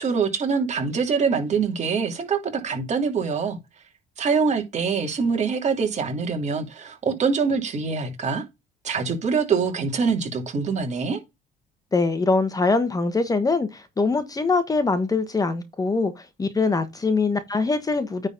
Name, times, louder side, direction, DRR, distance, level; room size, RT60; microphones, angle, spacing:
voice 1, 0.0-3.6 4.2-8.4 8.8-11.2, right 5 dB, 45° right, 2.6 m, -24 dB
voice 2, 11.9-18.3, left 3 dB, 20° left, 1.3 m, -23 dB
9.6 x 4.0 x 3.9 m
cardioid pair, 110°, 17 cm